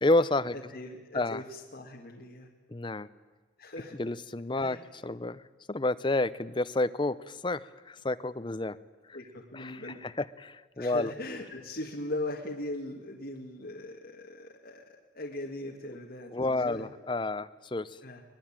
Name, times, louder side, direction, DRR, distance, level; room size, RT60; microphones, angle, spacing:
voice 1, 0.0-0.6 1.1-1.4 2.7-3.1 4.0-5.4 5.7-8.8 9.1-9.2 9.5-11.1 16.3-18.0, left 2 dB, 25° left, 13 dB, 0.7 m, -30 dB
voice 2, 0.5-2.5 3.6-3.9 4.6-4.8 9.1-10.0 10.8-16.9 18.0-18.2, left 1 dB, 50° left, 0 dB, 2.2 m, -39 dB
23.5 x 19.5 x 8.9 m, 1.3 s
head